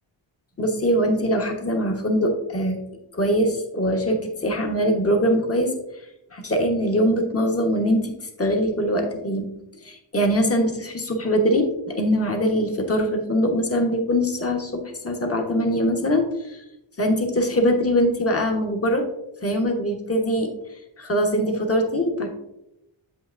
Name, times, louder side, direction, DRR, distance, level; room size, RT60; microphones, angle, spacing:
voice 1, 0.6-2.8 3.1-5.7 6.3-8.1 8.4-9.5 9.8-16.6 17.0-19.0 19.4-20.5 21.0-22.3, equal, 30° left, 3 dB, 1.2 m, -22 dB
7.8 x 5.8 x 2.6 m, 0.88 s
cardioid pair, 75°, 48 cm